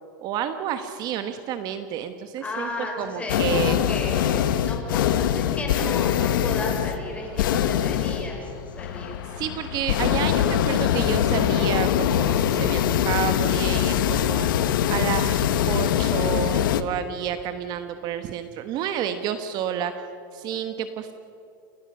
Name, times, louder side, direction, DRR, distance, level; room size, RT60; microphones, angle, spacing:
voice 1, 0.2-2.7 3.0-3.8 9.3-14.5 14.9-20.0 20.3-21.1, right 9 dB, 40° right, 9 dB, 1.1 m, -30 dB
voice 2, 2.4-9.2, left 2 dB, 10° left, 0 dB, 5.9 m, -34 dB
sound 1, 3.3-16.8, left 10 dB, 75° left, 1.2 m, -23 dB
29.5 x 16.5 x 6.6 m, 2.9 s
supercardioid pair, 145°, 11 cm